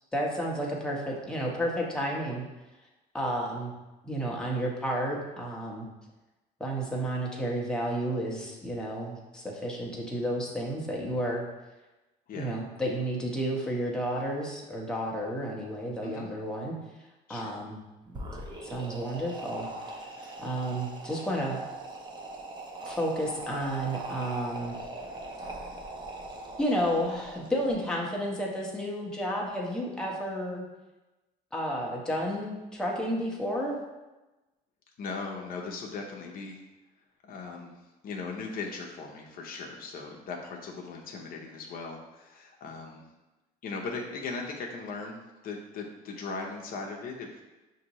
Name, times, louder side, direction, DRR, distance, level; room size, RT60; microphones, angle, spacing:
voice 1, 0.1-2.4 3.1-3.7 4.0-5.9 6.6-11.4 12.3-16.7 17.3-17.8 18.6-19.7 20.4-21.6 22.9-24.7 26.6-30.6 31.5-33.8, equal, 5° left, -3 dB, 0.9 m, -31 dB
voice 2, 12.3-12.6 16.0-16.3 17.3-17.6 20.1-20.4 35.0-36.6 37.2-37.7 38.0-43.0 43.6-47.4, left 4 dB, 60° left, 0 dB, 0.7 m, -38 dB
sound 1, 18.0-27.7, right 2 dB, 25° right, 0.7 m, -41 dB
5.7 x 2.7 x 2.9 m, 1.1 s
cardioid pair, 110°, 17 cm